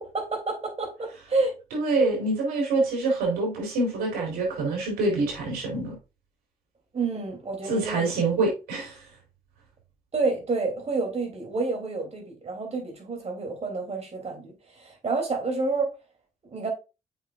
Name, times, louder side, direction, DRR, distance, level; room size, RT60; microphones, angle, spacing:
voice 1, 0.0-1.6 6.9-8.1 10.1-15.9 16.4-16.7, right 3 dB, 45° right, 3.2 m, -29 dB
voice 2, 1.7-6.0 7.7-9.1, right 3 dB, 85° right, 3.6 m, -26 dB
7.7 x 5.5 x 2.5 m
supercardioid pair, 55°, 16 cm